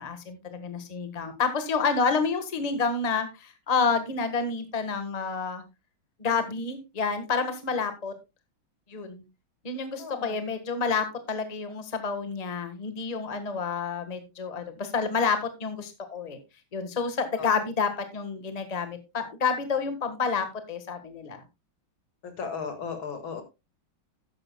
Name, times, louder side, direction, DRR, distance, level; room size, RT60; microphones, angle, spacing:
voice 1, 0.0-5.6 6.2-8.1 8.9-9.2 9.6-16.4 16.7-21.4, left 5 dB, 20° left, 8 dB, 1.4 m, -29 dB
voice 2, 10.0-10.4 17.4-17.5 22.2-23.4, left 6 dB, 80° left, 7 dB, 2.8 m, -35 dB
13.0 x 10.5 x 2.2 m, 0.23 s
omnidirectional pair, 2.2 m